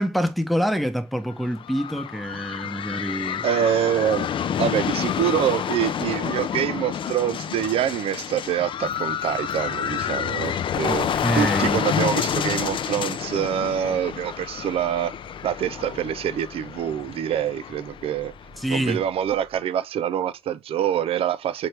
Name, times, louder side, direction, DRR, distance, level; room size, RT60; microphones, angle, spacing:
voice 1, 0.0-3.4 10.8-11.8 18.6-19.0, equal, ahead, 0.8 m, -26 dB
sound 1, 1.3-19.0, left 8 dB, 60° left, 0.4 m, -29 dB
voice 2, 3.4-4.3 4.6-15.1 15.4-18.3 18.7-21.7, right 10 dB, 80° right, 0.4 m, -25 dB
Motor vehicle (road), 8.8-19.6, left 1 dB, 65° right, 2.0 m, -50 dB
4.3 x 3.3 x 3.2 m
cardioid pair, 105°, 10 cm